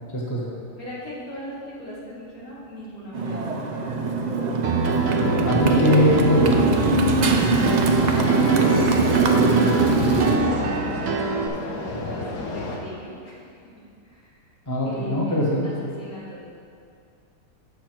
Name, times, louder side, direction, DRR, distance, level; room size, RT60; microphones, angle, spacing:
voice 1, 0.1-0.5 5.4-6.6 14.7-15.9, left 1 dB, 15° left, -4 dB, 1.0 m, -21 dB
voice 2, 0.8-3.4 7.3-9.3 9.5-10.8 11.2-13.5 14.0-14.4 14.8-16.4, left 1 dB, 65° left, -7 dB, 2.4 m, -40 dB
Motorcycle, 3.1-10.4, right 3 dB, 85° right, 0.3 m, -21 dB
Piano, 4.6-11.5, right 4 dB, 60° right, 1.0 m, -26 dB
sound 1, 5.2-12.8, left 2 dB, 85° left, 1.5 m, -32 dB
8.3 x 6.4 x 4.4 m, 2.4 s
omnidirectional pair, 1.7 m